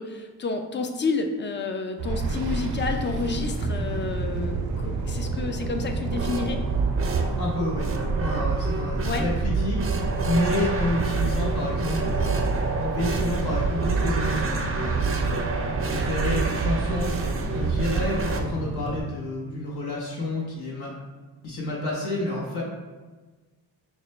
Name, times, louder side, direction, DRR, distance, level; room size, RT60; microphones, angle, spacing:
voice 1, 0.0-6.6 9.0-9.3, left 4 dB, 30° left, 5 dB, 0.4 m, -30 dB
sound 1, 2.0-19.0, right 3 dB, 80° right, 0.7 m, -30 dB
sound 2, 6.1-18.4, right 4 dB, 30° right, 0.5 m, -27 dB
voice 2, 7.4-7.9 8.2-9.8 10.2-12.4 12.8-15.4 15.8-17.1 17.5-20.9 21.4-22.6, left 2 dB, 65° left, -4 dB, 1.0 m, -29 dB
5.0 x 2.1 x 3.1 m, 1.3 s
cardioid pair, 65°, 42 cm